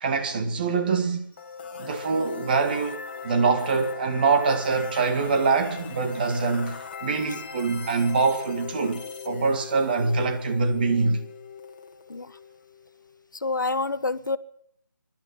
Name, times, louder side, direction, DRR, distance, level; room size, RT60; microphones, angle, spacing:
voice 1, 0.0-1.3 1.8-11.3, right 4 dB, 25° right, 2.1 m, -24 dB
sound 1, 1.3-13.2, left 6 dB, 30° left, 2.1 m, -39 dB
voice 2, 13.4-14.4, left 3 dB, 70° left, 1.1 m, -27 dB
24.5 x 12.5 x 9.9 m
figure-of-eight pair, 160°, 11 cm